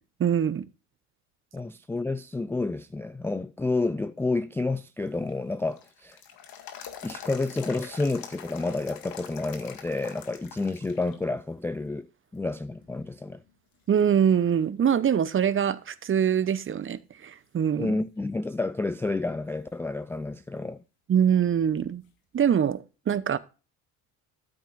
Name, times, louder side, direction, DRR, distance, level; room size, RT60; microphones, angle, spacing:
voice 1, 0.2-0.7 13.9-17.9 21.1-22.0 22.3-23.4, right 8 dB, 30° right, 0.8 m, -24 dB
voice 2, 1.5-6.2 7.0-12.1 12.3-13.4 17.8-20.8, left 3 dB, 5° left, 0.3 m, -30 dB
sound 1, 5.1-11.2 11.5-11.6 12.4-12.9 13.4-13.5 14.0-15.2 15.5-15.6 19.0-19.1 22.0-22.1, left 9 dB, 55° left, 1.9 m, -44 dB
12.5 x 8.2 x 2.5 m
hypercardioid pair, 75°, 42 cm